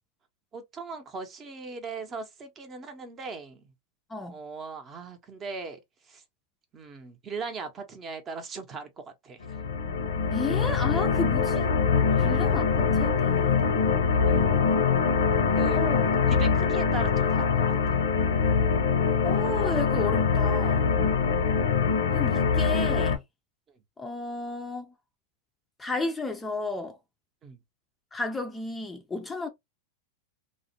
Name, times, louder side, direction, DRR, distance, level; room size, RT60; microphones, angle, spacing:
voice 1, 0.5-3.6 4.3-5.8 6.1-6.2 6.7-9.4 12.1-12.4 14.3-14.5 15.5-15.8 16.3-17.7 21.4-21.6 27.4-27.6, right 4 dB, 30° right, 0.7 m, -39 dB
sound 1, 9.4-23.2, left 5 dB, 80° left, 0.6 m, -24 dB
voice 2, 10.3-11.7 12.2-13.8 15.7-16.1 19.2-20.9 22.1-23.2 24.0-24.9 25.8-27.0 28.1-29.5, left 3 dB, 15° left, 0.4 m, -33 dB
2.4 x 2.1 x 2.7 m
hypercardioid pair, 115°, 0 cm